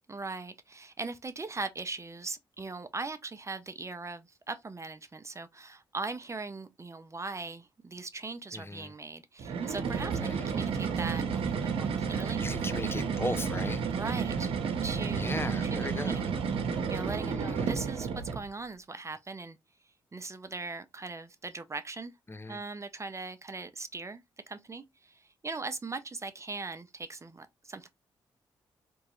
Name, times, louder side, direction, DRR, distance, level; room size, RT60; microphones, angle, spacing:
voice 1, 0.1-12.4 13.9-14.5 14.8-16.3 16.9-19.6 20.1-22.1 22.5-27.9, right 3 dB, 30° right, 0.7 m, -40 dB
voice 2, 8.5-8.9 10.2-10.5 12.4-13.8 15.1-16.3 17.4-17.7 22.3-22.6, left 2 dB, 25° left, 0.6 m, -37 dB
sound 1, 9.4-18.5, right 6 dB, 75° right, 0.7 m, -31 dB
3.5 x 3.0 x 3.0 m
supercardioid pair, 50°, 10 cm